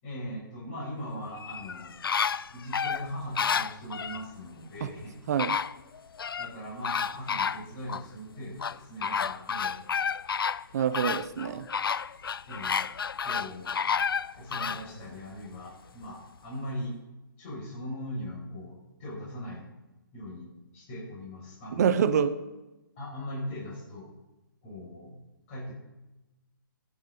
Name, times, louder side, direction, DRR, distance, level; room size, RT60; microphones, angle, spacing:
voice 1, 0.0-1.9 2.5-5.1 6.4-10.0 11.4-11.5 12.5-12.8 13.2-14.0 14.3-16.9 17.4-19.7 20.1-21.9 23.0-24.1 24.6-25.2 25.5-25.7, equal, 35° left, -5 dB, 6.2 m, -40 dB
Flamingo Calls Ensemble A, 1.4-4.2 5.0-5.1 5.4-6.5 6.8-8.0 8.6-14.8 15.3-15.4, left 6 dB, 90° left, 0.4 m, -30 dB
voice 2, 10.7-11.6 21.8-22.4, right 8 dB, 50° right, 12 dB, 0.9 m, -25 dB
23.0 x 9.9 x 4.0 m, 1.0 s
hypercardioid pair, 155°, 12 cm